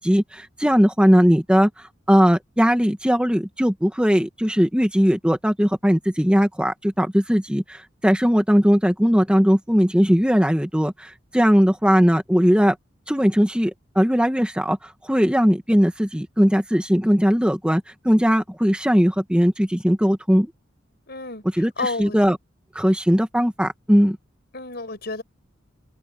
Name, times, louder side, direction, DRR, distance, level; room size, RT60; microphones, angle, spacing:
voice 1, 0.0-12.8 13.1-20.5 21.6-22.4 22.8-24.2, equal, 5° right, 1.9 m, -19 dB
voice 2, 21.1-22.2 24.5-25.2, left 3 dB, 60° left, 5.3 m, -31 dB
head